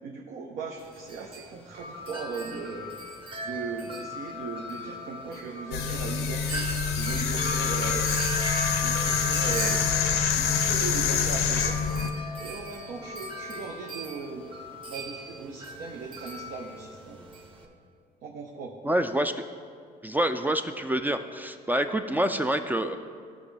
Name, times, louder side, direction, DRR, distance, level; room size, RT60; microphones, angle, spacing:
voice 1, 0.0-2.9 3.4-6.7 7.0-8.1 8.8-9.8 10.3-11.8 12.4-14.5 14.9-17.2 18.2-18.7, right 4 dB, 75° right, -1 dB, 0.9 m, -38 dB
Wind chime, 0.8-17.6, equal, 30° right, 1.1 m, -37 dB
sound 1, 5.7-12.1, left 6 dB, 90° left, 0.7 m, -26 dB
voice 2, 18.8-19.4 20.0-23.0, right 1 dB, 10° right, 8 dB, 0.3 m, -27 dB
14.5 x 5.2 x 3.4 m, 2.1 s
cardioid pair, 110°, 17 cm